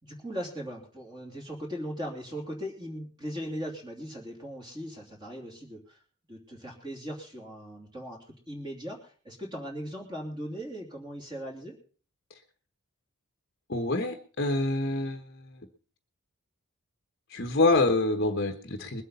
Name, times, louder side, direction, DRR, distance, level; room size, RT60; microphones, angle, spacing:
voice 1, 0.0-6.0 6.3-8.2 8.5-11.8, equal, 20° right, 0 dB, 2.9 m, -39 dB
voice 2, 13.7-15.7 17.3-19.0, left 2 dB, 45° left, 5 dB, 1.1 m, -26 dB
21.0 x 8.3 x 5.5 m, 0.40 s
head